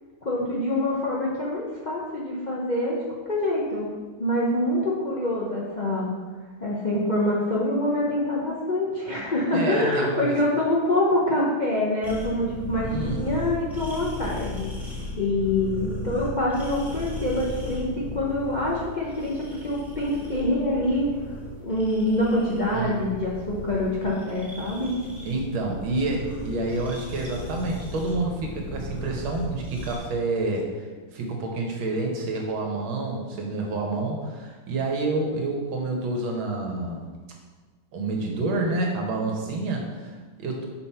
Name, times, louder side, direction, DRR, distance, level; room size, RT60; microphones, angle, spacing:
voice 1, 0.2-3.0 3.3-3.9 4.2-6.1 6.6-14.7 15.2-17.9 18.1-21.1 21.6-24.9, left 1 dB, 80° left, -5 dB, 0.4 m, -25 dB
voice 2, 9.5-10.4 12.8-13.2 22.7-23.0 25.2-37.0 37.9-40.7, right 2 dB, 75° right, 1 dB, 1.9 m, -28 dB
sound 1, 12.0-30.0, left 1 dB, ahead, 1.1 m, -36 dB
5.6 x 5.2 x 4.4 m, 1.4 s
omnidirectional pair, 2.3 m